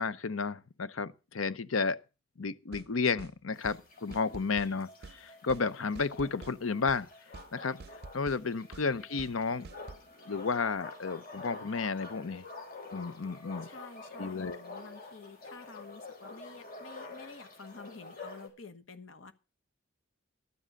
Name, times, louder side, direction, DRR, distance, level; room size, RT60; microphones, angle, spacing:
voice 1, 0.0-2.0 2.4-7.1 7.5-7.8 8.1-9.7 10.3-12.4 12.9-13.7 14.2-14.6, left 4 dB, 90° left, 0.7 m, -32 dB
sound 1, 2.7-2.9 3.2-3.3 3.6-3.8 4.1-4.7 5.0-5.2 5.5-5.6 5.9-6.6 6.9-7.0 7.3-7.5 7.8-8.4 8.7-8.9 9.2-9.3 9.6-10.0, right 4 dB, 50° right, 0.5 m, -48 dB
sound 2, 3.5-18.5, left 3 dB, 45° left, 4.5 m, -48 dB
voice 2, 13.6-19.3, left 4 dB, 70° left, 1.2 m, -50 dB
12.5 x 7.5 x 6.5 m
head